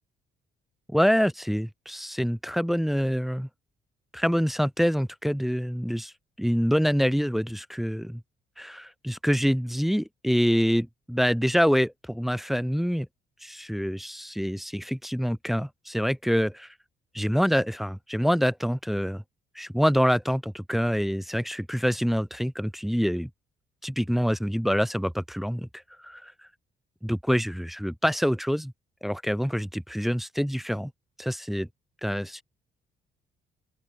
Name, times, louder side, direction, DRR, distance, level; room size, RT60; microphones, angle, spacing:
voice 1, 0.9-3.5 4.1-6.1 6.4-8.2 8.6-13.1 13.4-16.7 17.1-19.2 19.6-23.3 23.8-25.7 26.0-26.3 27.0-28.7 29.0-30.9 31.2-31.7 32.0-32.4, equal, ahead, 0.6 m, -26 dB
open air
cardioid pair, 90°, 20 cm